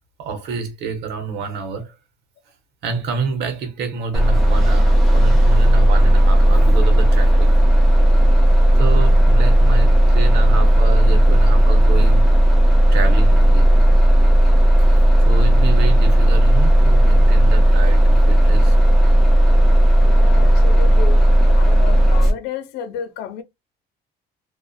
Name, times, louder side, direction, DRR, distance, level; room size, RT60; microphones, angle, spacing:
voice 1, 0.2-1.9 2.8-7.5 8.8-12.3 12.9-13.7 14.8-18.7, right 5 dB, 80° right, 0.8 m, -28 dB
Bus, 4.1-22.3, right 1 dB, ahead, 1.0 m, -13 dB
voice 2, 19.9-23.4, left 8 dB, 90° left, 0.5 m, -32 dB
2.5 x 2.3 x 2.2 m
cardioid pair, 110°, 17 cm